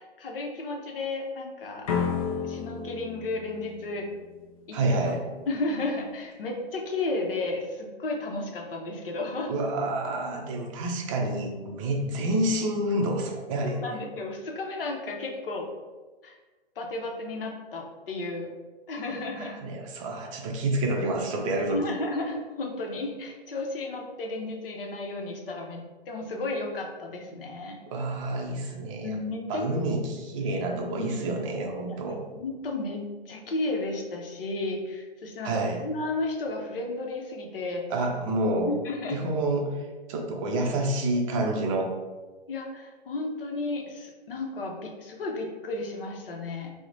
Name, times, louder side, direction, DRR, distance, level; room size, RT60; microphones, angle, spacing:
voice 1, 0.0-1.9 2.4-4.1 4.7-5.0 5.5-9.5 13.6-15.7 16.2-16.4 16.8-18.5 18.9-19.6 21.7-27.8 29.0-29.6 30.7-31.3 31.9-37.9 38.7-39.3 42.5-46.7, left 2 dB, 60° left, 2 dB, 0.8 m, -33 dB
sound 1, 1.9-4.8, left 6 dB, 35° left, 0.4 m, -32 dB
voice 2, 4.7-5.3 9.5-13.8 19.4-21.9 27.9-29.2 29.5-32.2 35.4-35.8 37.9-38.7 39.1-41.9, right 1 dB, 35° right, 1 dB, 0.5 m, -28 dB
2.9 x 2.1 x 3.8 m, 1.3 s
figure-of-eight pair, 120°, 31 cm